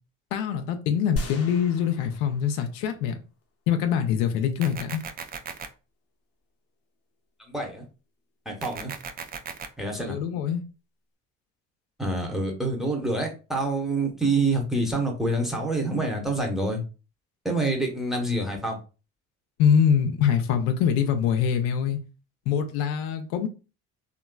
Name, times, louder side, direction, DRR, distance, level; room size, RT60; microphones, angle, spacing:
voice 1, 0.3-3.1 3.7-5.0 10.0-10.6 19.6-22.0 22.5-23.5, left 8 dB, 70° left, 0.6 m, -24 dB
sound 1, 1.2-3.1 3.4-3.5, left 2 dB, 35° left, 0.7 m, -36 dB
sound 2, 4.6-5.7 8.6-9.7, right 6 dB, 25° right, 0.3 m, -37 dB
voice 2, 7.5-7.9 8.4-8.9 9.8-10.2 12.0-16.8 17.4-18.8, right 2 dB, ahead, 0.9 m, -27 dB
3.0 x 2.5 x 2.2 m
hypercardioid pair, 55°, 41 cm